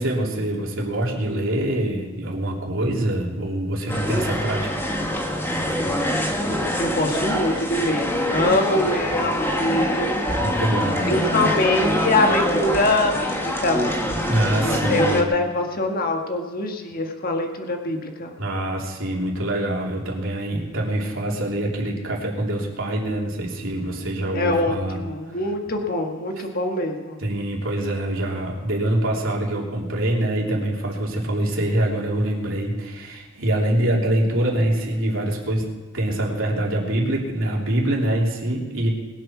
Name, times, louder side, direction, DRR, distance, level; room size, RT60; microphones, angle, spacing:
voice 1, 0.0-4.7 10.4-11.1 14.3-15.2 18.4-25.0 27.2-35.7 35.9-38.9, right 1 dB, 70° right, -2 dB, 3.2 m, -24 dB
sound 1, 3.9-15.2, equal, 10° left, 1.5 m, -24 dB
voice 2, 6.8-10.1 11.1-13.8 14.6-18.3 24.3-27.2, left 2 dB, 45° left, 3 dB, 1.7 m, -23 dB
21.5 x 8.0 x 6.1 m, 1.5 s
head